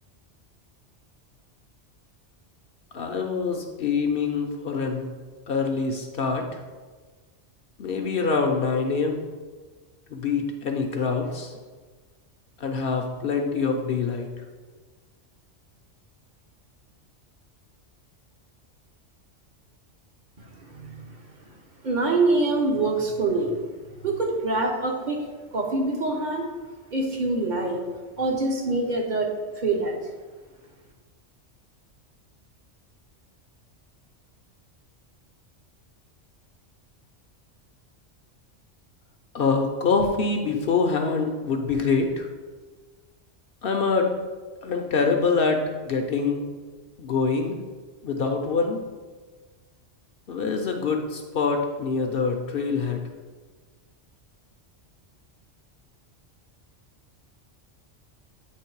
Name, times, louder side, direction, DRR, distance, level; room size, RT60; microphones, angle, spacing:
voice 1, 2.9-5.1 5.5-6.6 7.8-9.2 10.1-11.5 12.6-14.3 39.3-42.3 43.6-44.1 44.6-46.5 47.0-47.6 48.0-48.8 50.3-53.0, left 4 dB, 60° left, 4 dB, 0.7 m, -25 dB
voice 2, 20.4-21.5 21.8-23.6 24.0-26.5 26.9-27.8 28.2-30.0, right 2 dB, 45° right, 0 dB, 0.8 m, -25 dB
8.4 x 3.0 x 4.5 m, 1.4 s
omnidirectional pair, 1.2 m